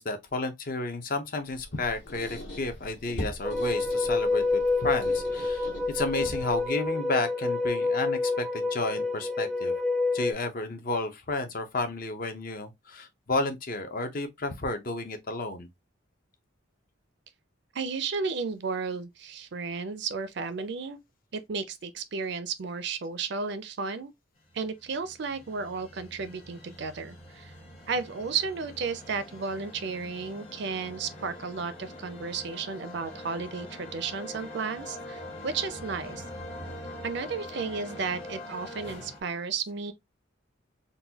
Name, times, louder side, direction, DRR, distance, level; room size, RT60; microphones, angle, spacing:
voice 1, 0.0-9.7 10.1-15.7, left 2 dB, 45° left, 0.6 m, -32 dB
Squeak, 1.5-6.8, left 1 dB, 60° left, 1.4 m, -41 dB
sound 1, 3.4-10.3, left 3 dB, ahead, 0.4 m, -28 dB
voice 2, 17.7-21.0 21.3-24.1 24.5-27.5 27.9-36.2 37.0-39.9, right 5 dB, 55° right, 0.4 m, -33 dB
sound 2, 24.5-39.2, left 1 dB, 30° left, 1.0 m, -44 dB
3.9 x 2.2 x 2.7 m
head